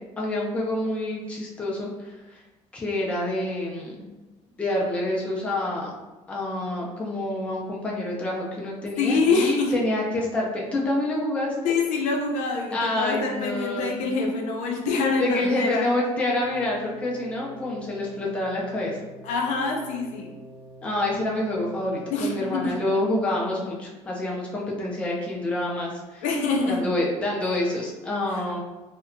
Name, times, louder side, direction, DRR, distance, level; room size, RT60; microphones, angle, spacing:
voice 1, 0.2-2.4 2.7-4.1 4.6-5.9 6.3-11.7 12.7-14.0 15.2-19.0 20.8-26.2 26.6-28.6, left 1 dB, 10° left, -3 dB, 0.4 m, -27 dB
voice 2, 9.0-9.7 11.6-15.9 19.2-20.4 22.1-22.8 26.2-26.8, left 4 dB, 70° left, 1 dB, 0.5 m, -25 dB
sound 1, 16.4-22.7, right 1 dB, 30° left, 0.9 m, -46 dB
2.7 x 2.1 x 2.5 m, 1.1 s
cardioid pair, 160°, 13 cm